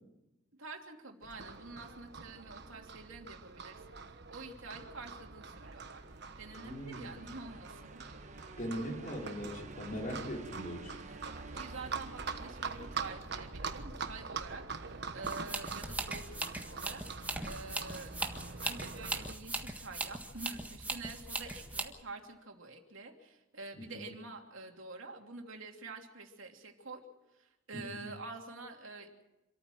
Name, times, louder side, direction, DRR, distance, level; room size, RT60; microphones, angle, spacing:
voice 1, 0.5-6.0 6.4-8.0 11.1-18.1 18.6-27.0 27.3-29.1, right 3 dB, 90° right, 2 dB, 2.9 m, -48 dB
Livestock farm animals working animals, 1.2-19.3, right 5 dB, 60° right, 1.3 m, -44 dB
sound 1, 5.8-14.1, right 3 dB, 40° right, 1.2 m, -52 dB
voice 2, 6.6-7.1 8.6-11.1 27.7-28.1, equal, 45° left, 0 dB, 4.3 m, -40 dB
sound 2, 15.2-21.8, right 2 dB, 10° right, 1.6 m, -39 dB
27.0 x 14.0 x 7.8 m, 0.99 s
head